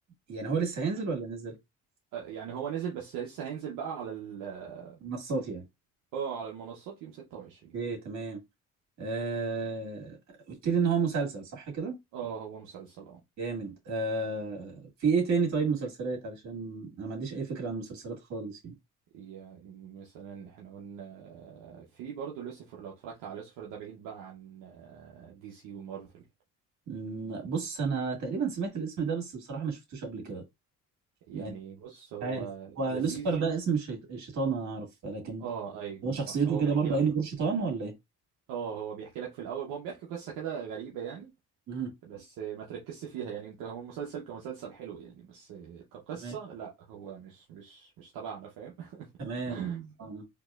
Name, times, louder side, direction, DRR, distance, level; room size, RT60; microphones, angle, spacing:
voice 1, 0.3-1.5 5.0-5.6 7.7-8.4 9.0-10.2 10.5-12.0 13.4-18.7 26.9-30.4 31.3-31.5 32.2-32.5 32.8-35.4 36.0-37.9 41.7-41.9 46.2-46.3 49.2-49.7 50.0-50.2, right 5 dB, 60° right, 1.9 m, -31 dB
voice 2, 2.1-5.0 6.1-7.7 12.1-13.2 19.1-26.2 31.3-33.3 35.4-36.1 36.4-37.0 38.5-41.3 42.0-49.1 49.5-49.9, right 8 dB, 80° right, 0.9 m, -40 dB
4.0 x 3.0 x 2.4 m
supercardioid pair, 75°, 32 cm